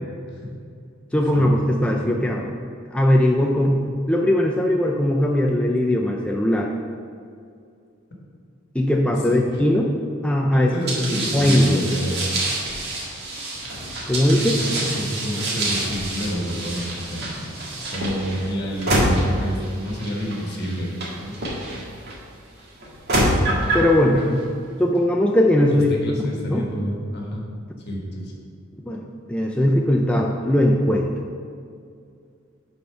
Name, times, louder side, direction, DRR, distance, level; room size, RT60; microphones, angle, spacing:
voice 1, 1.1-2.5 2.9-6.7 8.7-9.9 10.2-10.7 11.3-11.8 14.1-14.6 23.7-24.2 24.8-26.2 26.5-26.7 28.9-31.1, left 1 dB, 5° left, 0 dB, 0.4 m, -19 dB
voice 2, 9.1-9.7 10.5-12.3 14.4-17.5 17.9-20.9 21.2-21.4 23.6-23.7 24.1-24.4 25.7-27.5 27.9-28.3, equal, 55° left, -1 dB, 1.5 m, -29 dB
sound 1, 10.9-22.1 22.8-23.9, right 1 dB, 55° right, 1.7 m, -27 dB
8.3 x 4.2 x 5.6 m, 2.3 s
head